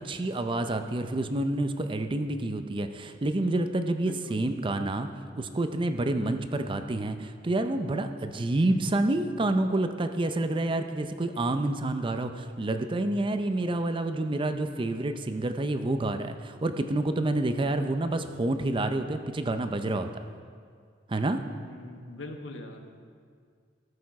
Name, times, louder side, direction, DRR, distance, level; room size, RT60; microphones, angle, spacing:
voice 1, 0.0-5.1 5.4-20.1 21.1-21.4, right 2 dB, 25° right, 8 dB, 0.5 m, -28 dB
voice 2, 4.0-4.4 8.5-9.3 21.6-23.0, left 1 dB, 80° left, 5 dB, 1.0 m, -43 dB
14.0 x 6.7 x 4.7 m, 2.2 s
head